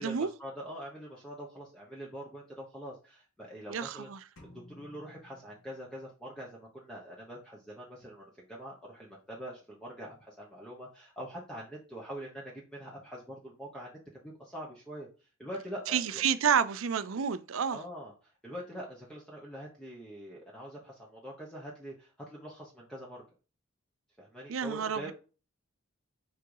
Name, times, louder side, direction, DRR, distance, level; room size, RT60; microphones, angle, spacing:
voice 1, 0.0-4.1 4.4-16.2 17.7-23.2 24.2-25.1, equal, 5° left, 1.1 m, -44 dB
voice 2, 3.7-4.2 15.9-17.8 24.5-25.1, right 7 dB, 70° right, 0.5 m, -29 dB
sound 1, 4.4-6.2, left 1 dB, 70° left, 2.6 m, -56 dB
5.1 x 4.6 x 4.8 m
head